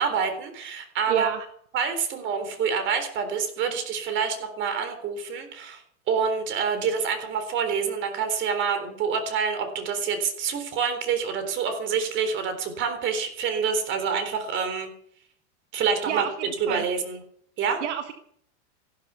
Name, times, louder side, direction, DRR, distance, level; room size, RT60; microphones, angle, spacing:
voice 1, 0.0-1.3 1.7-5.8 6.1-14.9 15.7-16.3 16.6-17.2 17.6-17.8, right 6 dB, 30° right, 8 dB, 3.8 m, -27 dB
voice 2, 1.1-1.5 16.1-16.8 17.8-18.1, right 10 dB, 70° right, 8 dB, 1.7 m, -29 dB
15.0 x 12.5 x 6.9 m, 0.64 s
supercardioid pair, 150°, 36 cm